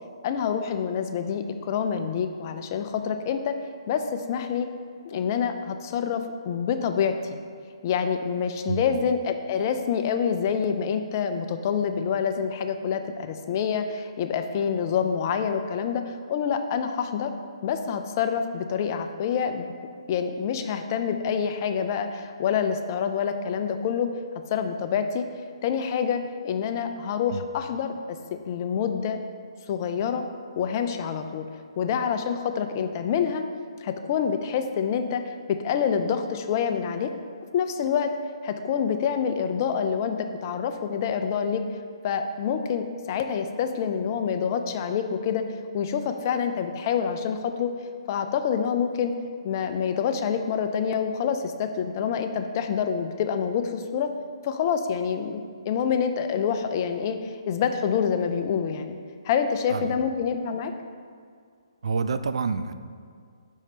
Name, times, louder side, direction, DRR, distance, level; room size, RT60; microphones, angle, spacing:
voice 1, 0.2-3.6 3.9-4.7 5.0-7.4 7.8-17.3 17.6-19.7 20.1-24.1 24.5-25.3 25.6-28.2 28.5-29.2 29.7-30.2 30.6-31.5 31.8-33.4 33.8-35.2 35.5-37.1 37.5-38.1 38.4-41.6 42.0-45.4 45.7-47.7 48.1-49.1 49.4-54.1 54.4-59.0 59.2-60.7, left 7 dB, 35° left, 7 dB, 0.4 m, -27 dB
voice 2, 61.8-62.7, right 5 dB, 75° right, 11 dB, 0.3 m, -28 dB
5.5 x 4.3 x 5.0 m, 2.2 s
hypercardioid pair, 150°, 3 cm